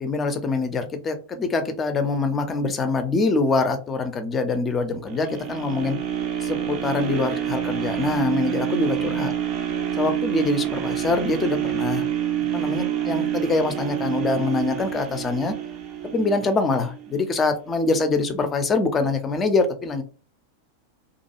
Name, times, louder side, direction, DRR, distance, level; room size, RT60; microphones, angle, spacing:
voice 1, 0.0-6.0 6.4-9.3 10.0-12.1 12.5-15.5 16.1-20.0, left 3 dB, 20° left, 7 dB, 0.5 m, -24 dB
sound 1, 5.1-17.2 17.7-17.8, right 10 dB, 35° right, 0.5 m, -27 dB
2.5 x 2.2 x 2.8 m, 0.37 s
figure-of-eight pair, 90°, 0 cm